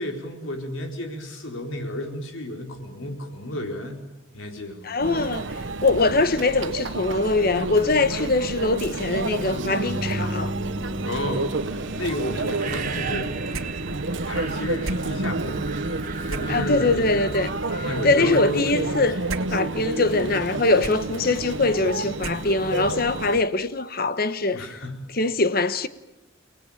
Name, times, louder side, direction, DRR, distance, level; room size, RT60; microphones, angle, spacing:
voice 1, 0.0-4.0 4.3-4.9 6.0-6.1 11.0-13.4 14.3-15.6 16.2-17.2 17.8-19.1 19.9-20.0 24.5-25.0, left 1 dB, 75° left, 4.5 m, -32 dB
voice 2, 4.8-5.5 5.8-10.5 16.5-17.5 18.0-19.2 19.5-24.7 25.2-25.9, left 3 dB, 45° left, 1.1 m, -22 dB
Conversation / Chatter / Crowd, 5.0-23.4, right 2 dB, 65° right, 1.0 m, -30 dB
sound 1, 9.2-19.1, right 2 dB, 40° right, 1.7 m, -34 dB
sound 2, 13.5-22.9, right 3 dB, 85° right, 2.0 m, -40 dB
30.0 x 19.0 x 9.0 m
head